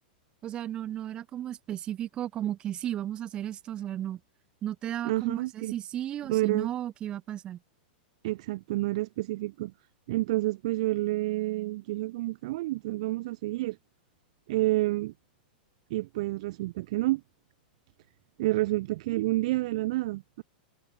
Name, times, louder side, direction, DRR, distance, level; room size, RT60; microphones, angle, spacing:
voice 1, 0.4-4.2 4.6-7.6, right 11 dB, 20° right, 1.7 m, -34 dB
voice 2, 5.0-5.7 6.3-6.7 8.2-9.7 10.1-13.8 14.5-15.1 15.9-17.2 18.4-20.4, right 18 dB, 45° right, 0.8 m, -29 dB
supercardioid pair, 175°, 5 cm